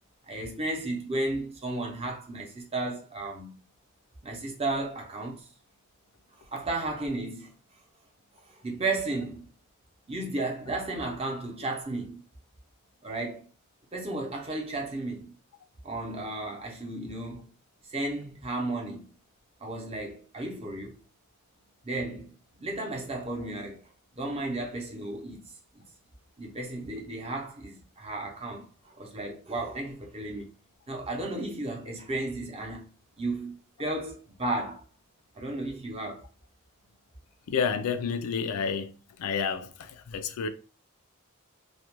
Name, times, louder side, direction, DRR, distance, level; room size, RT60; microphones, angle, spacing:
voice 1, 0.3-3.6 4.2-5.5 6.5-7.5 8.5-9.4 10.1-12.2 13.0-13.5 13.9-15.3 15.8-17.5 17.9-19.1 19.6-20.9 21.8-22.3 22.6-23.8 24.1-25.4 26.4-28.7 28.9-30.5 30.9-32.9 33.2-34.8 35.3-36.2, right 2 dB, 30° right, 0.6 m, -34 dB
voice 2, 37.5-38.9 39.2-40.5, left 6 dB, 85° left, 0.4 m, -30 dB
2.4 x 2.1 x 2.9 m
head